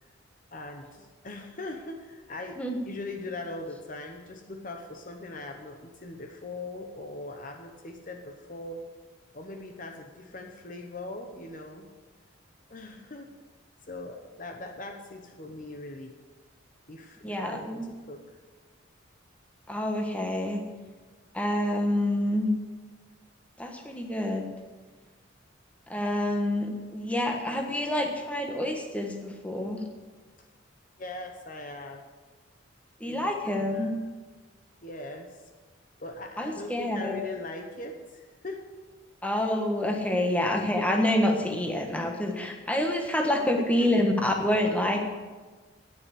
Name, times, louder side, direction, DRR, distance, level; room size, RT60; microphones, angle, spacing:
voice 1, 0.5-8.9 9.3-11.9 12.7-13.3 13.9-16.2 16.9-18.3 31.0-32.0 33.1-34.0 34.8-35.4 36.0-38.7 40.1-40.3 40.6-40.9 43.6-43.9, left 2 dB, 40° left, 4 dB, 1.0 m, -40 dB
voice 2, 17.2-17.9 19.7-20.6 21.3-22.5 23.6-24.4 25.9-29.8 33.0-33.9 36.4-37.2 39.2-45.0, left 1 dB, 5° left, 2 dB, 1.3 m, -27 dB
9.5 x 9.5 x 8.3 m, 1.3 s
head